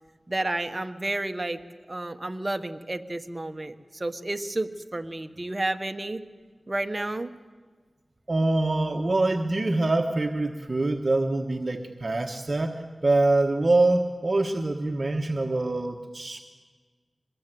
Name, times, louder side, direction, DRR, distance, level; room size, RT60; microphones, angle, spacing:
voice 1, 0.3-1.6 1.9-6.3 6.7-7.3, right 2 dB, 30° right, 8 dB, 1.3 m, -31 dB
voice 2, 8.3-16.4, right 2 dB, 50° right, 4 dB, 1.4 m, -25 dB
23.5 x 21.5 x 7.7 m, 1.5 s
wide cardioid pair, 55°, 0 cm